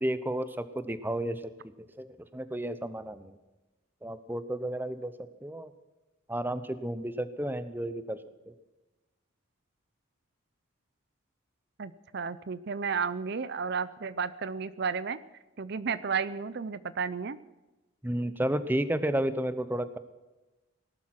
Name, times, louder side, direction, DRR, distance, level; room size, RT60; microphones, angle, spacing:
voice 1, 0.0-1.4 2.0-3.4 4.0-5.1 5.4-5.7 6.3-8.2 8.5-8.6 18.0-20.0, right 1 dB, 10° right, 13 dB, 0.8 m, -32 dB
voice 2, 11.8-15.2 15.6-17.4, right 5 dB, 50° right, 16 dB, 0.5 m, -32 dB
18.5 x 12.0 x 5.9 m, 1.1 s
head